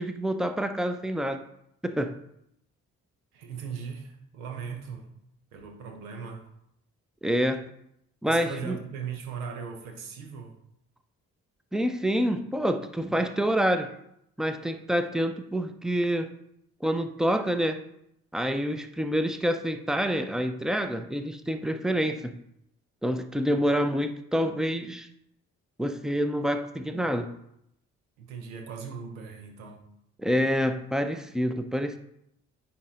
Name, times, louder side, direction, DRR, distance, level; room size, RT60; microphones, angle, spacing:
voice 1, 0.0-1.4 1.8-2.2 7.2-7.7 8.2-8.8 11.7-13.9 14.4-16.3 16.8-17.8 18.3-22.4 23.0-25.1 25.8-27.3 30.2-32.0, equal, ahead, 8 dB, 0.7 m, -27 dB
voice 2, 3.3-5.1 5.5-6.4 8.3-10.6 28.2-29.8, right 6 dB, 80° right, 4 dB, 1.1 m, -38 dB
9.7 x 4.2 x 3.8 m, 0.77 s
figure-of-eight pair, 40°, 42 cm